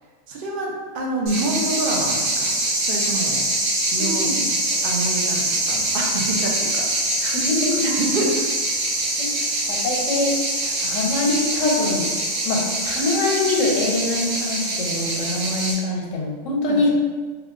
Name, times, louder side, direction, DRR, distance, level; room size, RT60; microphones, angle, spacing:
voice 1, 0.3-2.5 2.8-3.4 3.9-4.3 4.8-6.9 7.8-8.3 8.7-8.9 16.7-16.8, right 2 dB, 60° right, -1 dB, 0.6 m, -27 dB
sound 1, 1.3-15.7, right 1 dB, 90° right, 1.1 m, -24 dB
voice 2, 4.0-4.5 7.2-7.9 9.2-12.1 12.4-16.9, left 2 dB, 90° left, -2 dB, 1.0 m, -24 dB
3.3 x 2.2 x 2.5 m, 1.4 s
omnidirectional pair, 1.3 m